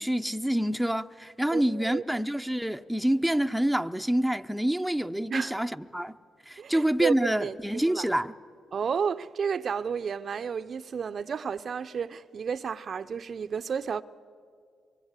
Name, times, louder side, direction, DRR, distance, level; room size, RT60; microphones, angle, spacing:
voice 1, 0.0-6.2 6.5-8.3, right 1 dB, ahead, 0.7 m, -27 dB
voice 2, 1.5-2.0 5.3-5.5 6.6-8.1 8.7-14.0, right 6 dB, 55° right, 0.6 m, -32 dB
25.5 x 23.5 x 8.2 m
supercardioid pair, 60°, 0 cm